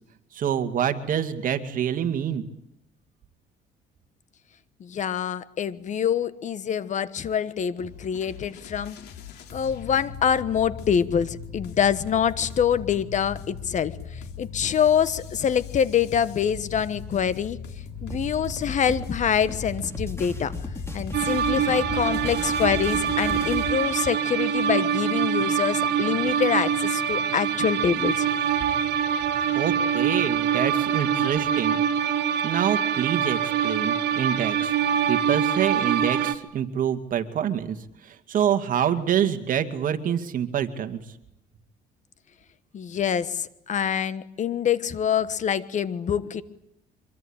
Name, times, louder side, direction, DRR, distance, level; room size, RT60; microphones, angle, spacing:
voice 1, 0.3-2.5 29.6-31.8 32.4-34.7 35.1-37.8 38.0-41.0, right 9 dB, 55° right, 8 dB, 2.3 m, -26 dB
voice 2, 4.8-9.0 9.5-14.0 14.4-17.6 18.0-20.5 20.9-28.2 42.7-46.4, left 8 dB, 45° left, 16 dB, 1.3 m, -25 dB
sound 1, 7.8-23.2, left 6 dB, 80° left, 3.1 m, -40 dB
sound 2, 18.1-23.7, left 2 dB, 15° left, 4.7 m, -36 dB
sound 3, 21.1-36.4, right 8 dB, 75° right, 1.5 m, -24 dB
25.5 x 23.0 x 8.9 m, 0.77 s
cardioid pair, 110°, 17 cm